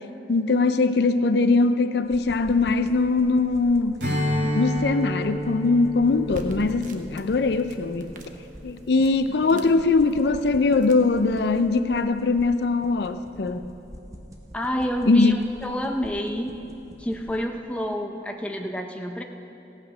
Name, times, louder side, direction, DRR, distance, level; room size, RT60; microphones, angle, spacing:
voice 1, 0.3-4.0 4.6-8.1 8.6-13.6 15.1-15.4, left 3 dB, 65° left, 10 dB, 0.5 m, -21 dB
sound 1, 2.0-17.4, equal, 20° right, 1.1 m, -46 dB
Strum, 4.0-8.8, equal, 80° right, 2.9 m, -30 dB
sound 2, 6.1-11.6, right 1 dB, 45° right, 0.9 m, -46 dB
voice 2, 14.5-16.6 17.0-19.2, equal, 5° left, 3 dB, 0.6 m, -28 dB
15.5 x 8.9 x 6.1 m, 2.9 s
head